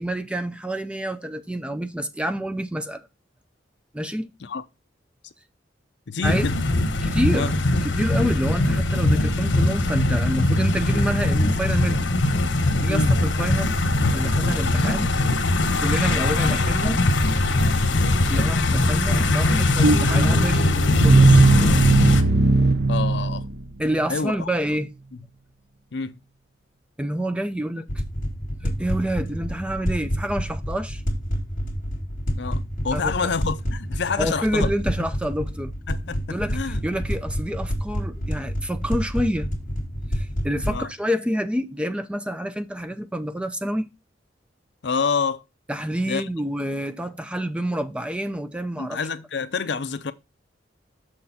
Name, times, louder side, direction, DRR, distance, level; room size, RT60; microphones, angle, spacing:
voice 1, 0.0-3.1 3.9-4.3 6.2-6.4 7.0-7.5 7.8-12.1 12.8-15.2 15.8-17.0 18.3-21.4 23.8-24.9 27.0-27.9 28.6-31.0 32.9-33.3 34.2-35.7 36.3-39.5 40.1-43.9 45.7-49.0, equal, 5° right, 0.5 m, -28 dB
voice 2, 6.1-6.6 7.3-7.5 12.9-13.1 22.8-23.4 24.1-24.3 25.9-26.2 32.4-34.7 35.9-36.8 40.7-40.9 44.8-45.4 46.0-46.3 48.8-50.1, left 5 dB, 65° left, 0.6 m, -27 dB
sound 1, 6.2-22.2, left 2 dB, 80° left, 1.1 m, -21 dB
sound 2, 19.8-23.9, right 3 dB, 60° right, 0.8 m, -18 dB
sound 3, 27.9-40.9, equal, 45° left, 2.0 m, -28 dB
6.6 x 6.5 x 4.1 m
head